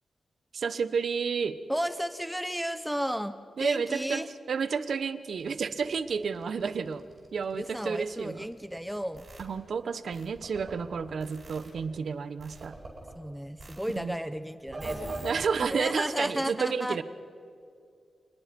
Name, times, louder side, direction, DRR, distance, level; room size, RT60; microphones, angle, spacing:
voice 1, 0.5-1.6 3.6-7.0 7.3-8.5 9.4-12.8 14.0-14.2 15.2-17.0, right 5 dB, 70° right, 13 dB, 1.0 m, -31 dB
voice 2, 1.7-4.3 7.5-9.3 13.1-15.2 15.6-17.0, equal, ahead, 11 dB, 0.8 m, -33 dB
sound 1, 5.3-9.4 10.1-11.8 12.4-13.1 13.6-14.0 14.7-15.7, right 2 dB, 40° right, 5.1 m, -42 dB
28.0 x 21.0 x 5.3 m, 2.3 s
wide cardioid pair, 130°, 0 cm